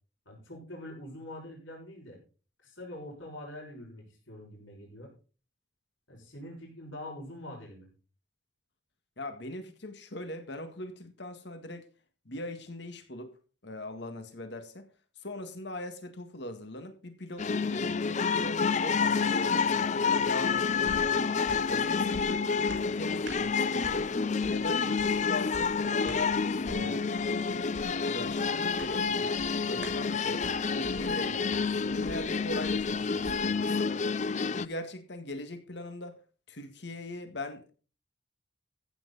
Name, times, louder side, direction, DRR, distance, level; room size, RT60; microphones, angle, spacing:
voice 1, 0.3-2.2 2.6-5.1 6.1-7.9, left 1 dB, 85° left, 6.2 m, -44 dB
voice 2, 9.2-11.9 12.3-13.3 13.6-14.9 15.2-21.3 21.7-24.1 24.5-26.4 26.6-27.1 28.0-30.4 30.7-34.0 34.4-36.2 36.5-37.7, left 1 dB, 60° left, 1.8 m, -40 dB
sound 1, 17.4-34.7, left 5 dB, 40° left, 0.5 m, -29 dB
sound 2, 20.8-33.9 34.3-34.4, right 1 dB, 65° right, 5.9 m, -49 dB
15.0 x 9.0 x 4.1 m
head